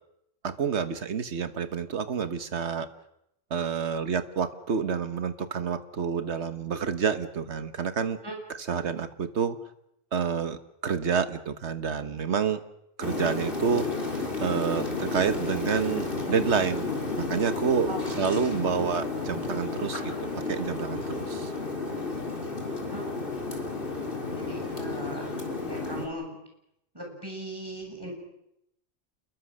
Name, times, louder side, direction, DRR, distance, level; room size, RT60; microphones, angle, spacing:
voice 1, 0.4-2.9 3.5-8.2 8.7-9.6 10.1-12.6 13.0-13.9 14.4-16.9 17.2-17.9 18.2-20.1 20.5-21.5, right 6 dB, 65° right, 11 dB, 1.6 m, -28 dB
sound 1, 13.0-26.1, left 3 dB, 45° left, 3.8 m, -32 dB
voice 2, 18.3-18.7 22.9-23.0 24.3-26.4 26.9-28.1, right 1 dB, 20° right, 1 dB, 7.1 m, -39 dB
28.0 x 22.0 x 6.5 m, 0.80 s
omnidirectional pair, 1.3 m